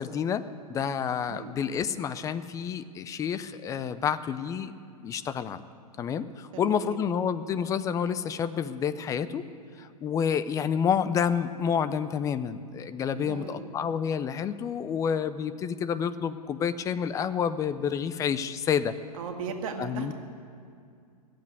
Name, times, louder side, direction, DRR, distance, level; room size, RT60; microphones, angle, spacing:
voice 1, 0.0-4.7 5.0-5.6 6.0-9.4 9.8-18.9 19.8-20.1, left 7 dB, 15° left, 13 dB, 0.4 m, -29 dB
voice 2, 1.2-1.5 6.5-7.0 13.1-13.7 19.1-20.1, right 6 dB, 60° right, 4 dB, 1.9 m, -37 dB
16.0 x 7.6 x 9.4 m, 2.3 s
hypercardioid pair, 125°, 20 cm